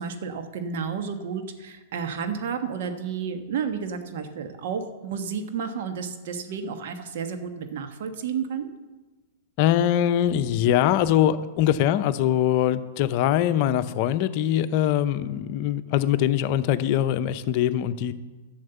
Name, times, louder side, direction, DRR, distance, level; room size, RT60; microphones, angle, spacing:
voice 1, 0.0-8.7, right 6 dB, 65° right, 7 dB, 1.3 m, -31 dB
voice 2, 9.6-18.1, left 11 dB, 50° left, 12 dB, 0.7 m, -22 dB
11.0 x 7.3 x 6.9 m, 1.3 s
hypercardioid pair, 115°, 0 cm